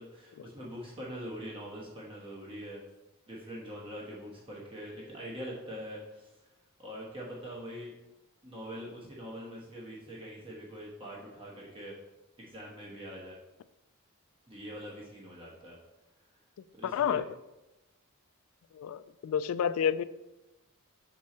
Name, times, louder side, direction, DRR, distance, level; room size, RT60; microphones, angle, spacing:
voice 1, 0.0-2.8 3.3-6.3 6.8-7.9 8.4-12.0 12.4-13.4 14.5-15.8 16.7-17.2, equal, 25° right, -4 dB, 1.2 m, -43 dB
voice 2, 16.8-17.2 18.7-20.0, left 8 dB, 70° left, 16 dB, 0.3 m, -29 dB
6.2 x 4.4 x 4.2 m, 1.0 s
head